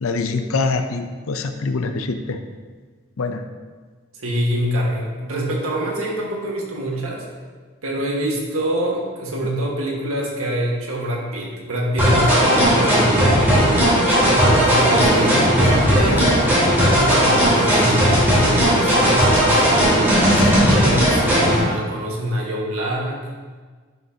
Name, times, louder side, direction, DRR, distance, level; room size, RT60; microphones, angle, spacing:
voice 1, 0.0-2.4 3.2-3.4, left 3 dB, 70° left, 7 dB, 0.6 m, -24 dB
voice 2, 4.2-7.3 7.8-13.8 14.4-16.6 17.0-19.6 20.3-23.3, equal, 85° right, -2 dB, 1.6 m, -25 dB
sound 1, 12.0-21.6, equal, 10° right, 2.3 m, -16 dB
11.0 x 5.7 x 2.8 m, 1.5 s
head